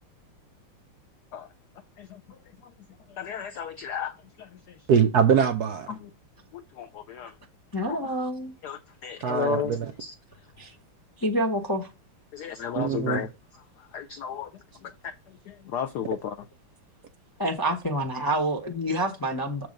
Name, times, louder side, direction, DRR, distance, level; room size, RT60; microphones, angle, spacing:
voice 1, 3.2-4.5 5.9-6.1 6.5-7.3 7.9-8.0 8.6-9.7 10.0-10.1 12.3-13.3 13.9-14.5 14.8-15.1 15.5-16.4, left 8 dB, 90° left, 0.8 m, -33 dB
voice 2, 4.9-5.9 9.2-9.9 12.8-13.3, right 7 dB, 65° right, 1.0 m, -23 dB
voice 3, 7.7-8.5 10.6-10.7 11.2-11.9 17.4-19.7, right 1 dB, 30° left, 0.4 m, -27 dB
7.3 x 4.7 x 5.2 m
omnidirectional pair, 2.4 m